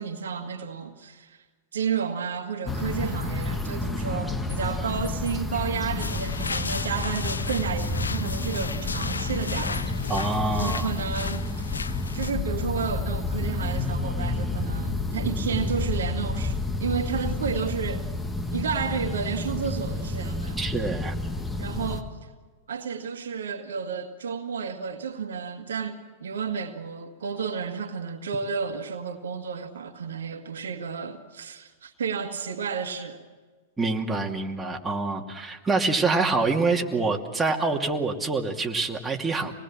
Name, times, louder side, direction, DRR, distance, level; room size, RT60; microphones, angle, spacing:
voice 1, 0.0-1.4 1.7-9.9 10.5-11.7 12.1-18.1 18.5-20.6 21.6-22.1 22.7-33.2, right 6 dB, 75° right, 1.9 m, -31 dB
sound 1, 2.7-22.0, left 2 dB, 10° left, 2.1 m, -30 dB
sound 2, 6.0-12.3, left 5 dB, 90° left, 0.6 m, -35 dB
voice 2, 10.1-10.9 20.6-21.1 33.8-39.5, right 3 dB, 10° right, 2.6 m, -26 dB
26.5 x 20.0 x 7.5 m
hypercardioid pair, 105°, 0 cm